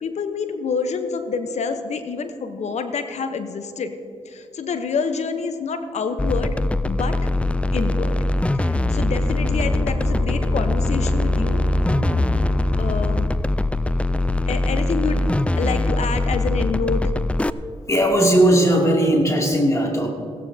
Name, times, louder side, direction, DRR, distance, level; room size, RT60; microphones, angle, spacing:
voice 1, 0.0-3.9 4.2-6.5 6.8-7.2 7.7-8.2 8.5-11.6 12.8-13.3 14.5-15.3 15.5-17.0, left 5 dB, 65° left, 9 dB, 0.9 m, -27 dB
sound 1, 6.2-17.5, left 2 dB, 10° left, 0.4 m, -22 dB
sound 2, 8.3-13.5, left 1 dB, 25° right, 2.5 m, -28 dB
voice 2, 17.9-20.1, right 1 dB, 25° left, 0 dB, 2.6 m, -17 dB
16.5 x 13.0 x 2.8 m, 2.5 s
supercardioid pair, 50°, 12 cm